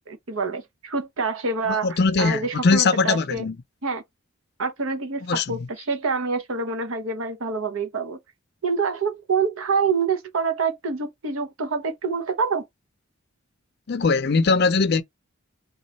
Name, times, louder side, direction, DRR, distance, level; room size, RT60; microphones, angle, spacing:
voice 1, 0.1-3.4 3.8-4.0 4.6-8.2 8.6-12.6, right 4 dB, 75° right, 0.8 m, -26 dB
voice 2, 1.7-3.6 5.3-5.7 13.9-15.0, left 4 dB, 50° left, 0.5 m, -21 dB
3.1 x 2.3 x 4.0 m
head